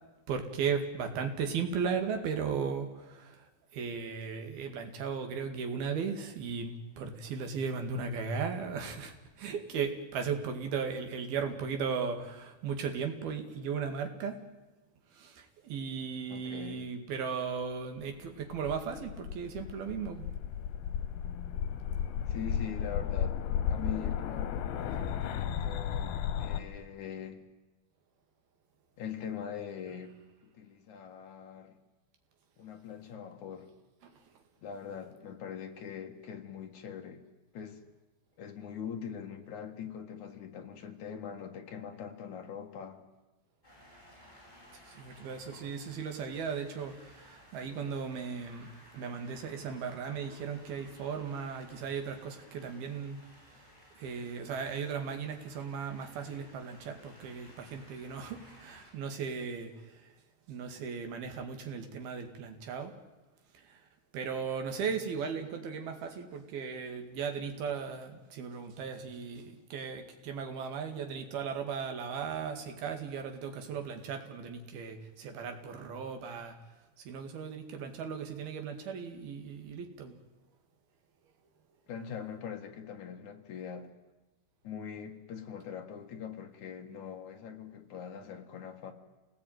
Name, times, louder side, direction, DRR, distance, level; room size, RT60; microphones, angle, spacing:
voice 1, 0.3-14.4 15.1-20.3 34.0-34.2 44.8-53.7 53.9-60.1 60.5-62.9 63.5-63.9 64.1-76.6 77.0-80.2, right 6 dB, 65° right, 6 dB, 3.9 m, -37 dB
voice 2, 16.3-16.9 22.3-23.4 23.7-27.4 29.0-30.1 30.4-31.8 32.6-33.7 34.6-37.2 37.5-37.8 38.4-43.0 81.9-83.9 84.6-88.9, left 7 dB, 55° left, 4 dB, 2.7 m, -42 dB
sound 1, 18.2-26.6, left 9 dB, 85° left, 3.5 m, -34 dB
sound 2, 43.6-58.9, equal, 10° left, 7.0 m, -58 dB
28.0 x 19.0 x 9.4 m, 1.2 s
omnidirectional pair, 4.9 m